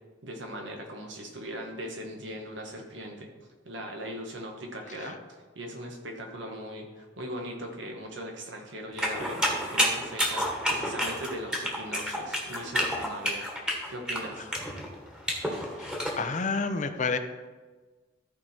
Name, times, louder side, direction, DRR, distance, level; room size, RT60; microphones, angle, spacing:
voice 1, 0.2-3.3 3.6-13.5 13.9-14.5, equal, 75° right, 2 dB, 1.6 m, -39 dB
sound 1, 9.0-16.1, equal, 5° right, 1.6 m, -29 dB
voice 2, 16.2-17.2, left 4 dB, 40° left, 9 dB, 0.6 m, -29 dB
13.5 x 4.9 x 4.5 m, 1.3 s
head